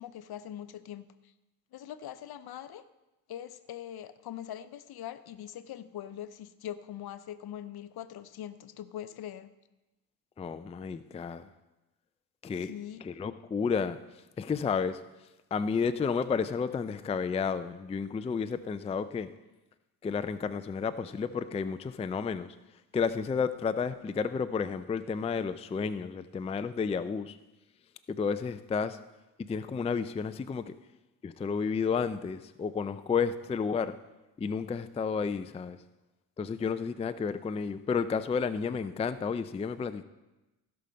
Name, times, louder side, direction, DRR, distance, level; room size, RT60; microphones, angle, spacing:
voice 1, 0.0-1.3 1.7-2.9 3.3-9.5 12.6-13.0, left 11 dB, 60° left, 13 dB, 0.7 m, -42 dB
voice 2, 10.4-11.5 12.4-12.7 13.0-14.0 14.4-15.0 15.5-19.3 20.0-22.6 22.9-27.4 28.1-29.0 29.4-30.7 31.2-34.0 34.4-35.8 36.4-40.0, left 5 dB, 15° left, 11 dB, 0.4 m, -31 dB
16.0 x 5.8 x 5.2 m, 1.0 s
cardioid pair, 85°, 42 cm